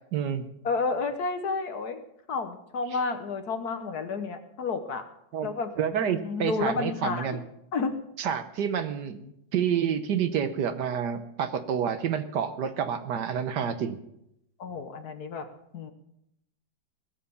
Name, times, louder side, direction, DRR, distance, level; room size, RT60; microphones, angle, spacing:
voice 1, 0.1-0.4 5.3-5.5 5.8-7.4 8.2-9.2 9.5-14.0, right 8 dB, 65° right, 10 dB, 1.4 m, -28 dB
voice 2, 0.6-2.0 2.3-5.0 5.4-5.7 6.0-7.4 7.7-8.0 9.2-9.3 14.6-15.5 15.7-15.9, left 4 dB, 60° left, 8 dB, 1.5 m, -31 dB
18.5 x 7.5 x 6.9 m, 0.78 s
omnidirectional pair, 2.1 m